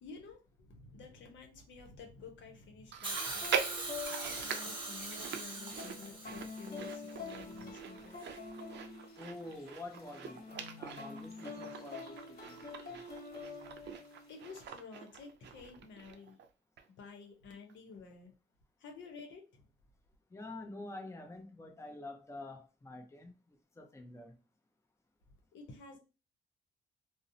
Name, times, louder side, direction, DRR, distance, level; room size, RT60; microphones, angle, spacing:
voice 1, 0.0-3.5 4.2-8.2 13.8-13.9 14.3-16.4 16.9-18.3 18.8-19.7 25.5-26.0, left 4 dB, 80° left, 0.7 m, -51 dB
Chewing mastication, 2.9-16.5 16.8-16.9 17.7-17.8, right 7 dB, 65° right, 0.5 m, -43 dB
Hiss, 3.0-7.2 8.2-8.3, right 2 dB, 25° right, 1.0 m, -42 dB
sound 1, 3.1-14.7, left 4 dB, 55° left, 1.1 m, -47 dB
voice 2, 9.2-10.5 10.8-13.0 20.3-24.3, left 2 dB, 15° left, 0.7 m, -48 dB
2.7 x 2.0 x 2.6 m
cardioid pair, 80°, 19 cm